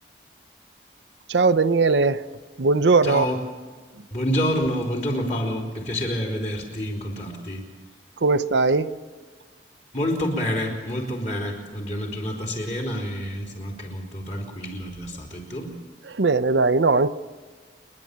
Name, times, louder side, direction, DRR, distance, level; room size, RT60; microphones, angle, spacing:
voice 1, 1.3-2.2 2.6-3.3 8.2-8.9 16.1-17.1, right 3 dB, 85° right, 11 dB, 0.7 m, -19 dB
voice 2, 3.0-3.4 4.1-7.6 9.9-15.7, equal, 40° left, 0 dB, 4.0 m, -28 dB
29.0 x 11.0 x 8.7 m, 1.4 s
head